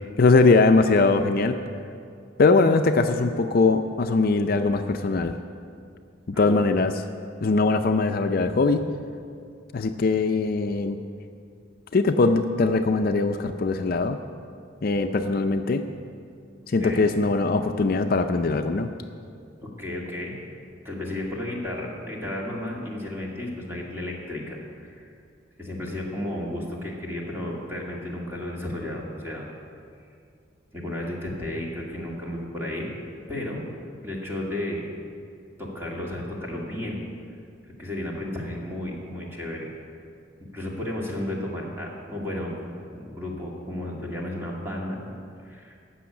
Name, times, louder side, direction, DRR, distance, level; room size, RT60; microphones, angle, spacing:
voice 1, 0.2-1.6 2.4-5.3 6.3-6.9 7.4-8.8 9.7-11.0 11.9-14.2 14.8-15.8 16.7-18.9, left 3 dB, 50° left, 7 dB, 0.5 m, -21 dB
voice 2, 19.6-20.4 20.8-25.1 25.6-29.5 30.7-32.9 33.3-33.6 34.0-34.9 35.6-37.0 37.8-39.7 40.5-45.2 45.4-45.7, left 1 dB, 15° right, -3 dB, 2.1 m, -33 dB
14.0 x 6.3 x 8.5 m, 2.3 s
head